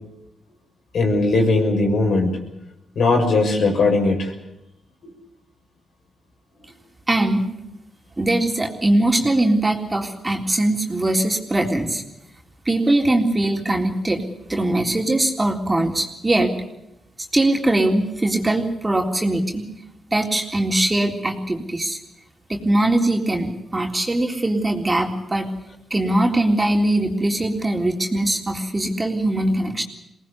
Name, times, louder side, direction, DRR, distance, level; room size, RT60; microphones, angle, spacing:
voice 1, 0.9-2.4 2.9-4.3, left 3 dB, 70° left, 2 dB, 6.6 m, -19 dB
voice 2, 7.1-7.5 8.2-12.0 12.7-14.2 14.5-16.6 17.3-19.7 20.1-22.0 22.5-25.5 25.9-29.8, right 1 dB, 20° right, 2 dB, 3.7 m, -21 dB
23.0 x 19.0 x 8.4 m, 0.87 s
supercardioid pair, 60°, 0 cm